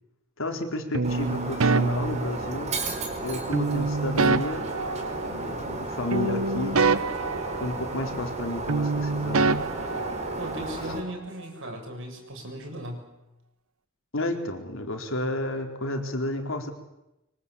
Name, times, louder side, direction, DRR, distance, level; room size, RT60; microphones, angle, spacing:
voice 1, 0.4-2.8 3.2-4.7 5.2-6.8 7.5-9.6 14.1-16.7, left 1 dB, 65° left, 4 dB, 4.3 m, -31 dB
sound 1, 0.9-2.9 3.5-5.8 6.1-8.4 8.7-10.7, right 3 dB, 85° right, 1.0 m, -27 dB
Shatter, 1.0-11.0, right 2 dB, 35° right, 4.9 m, -34 dB
voice 2, 10.4-13.2, equal, 65° right, 3 dB, 7.3 m, -37 dB
25.0 x 25.0 x 8.5 m, 0.93 s
head